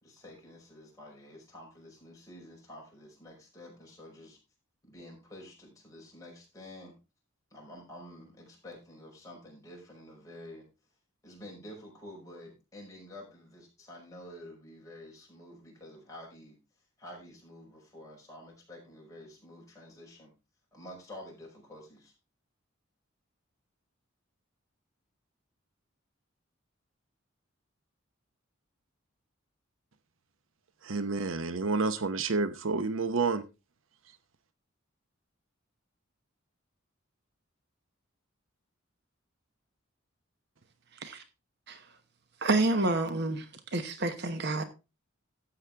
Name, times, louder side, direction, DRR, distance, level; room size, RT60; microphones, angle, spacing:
voice 1, 0.0-4.4 4.8-6.9 7.5-10.6 11.2-16.6 17.0-20.3 20.7-22.1, left 1 dB, 15° left, 5.4 m, -49 dB
voice 2, 30.8-33.4, right 4 dB, 75° right, 0.8 m, -29 dB
voice 3, 42.4-44.6, right 2 dB, 55° right, 1.1 m, -29 dB
12.5 x 8.1 x 3.5 m
head